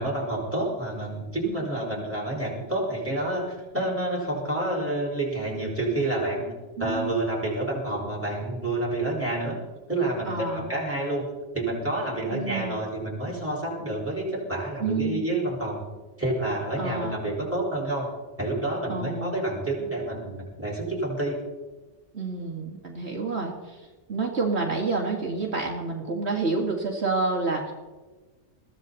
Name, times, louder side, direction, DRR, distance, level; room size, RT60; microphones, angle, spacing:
voice 1, 0.0-6.5 6.8-9.6 9.9-11.3 11.5-15.8 16.2-18.1 18.4-21.4, right 1 dB, 10° right, -4 dB, 4.9 m, -28 dB
voice 2, 6.8-7.1 10.3-10.7 12.3-12.8 14.8-15.3 16.8-17.2 18.9-19.4 22.1-27.7, right 3 dB, 65° right, -1 dB, 2.3 m, -29 dB
21.5 x 15.5 x 4.1 m, 1.2 s
omnidirectional pair, 1.2 m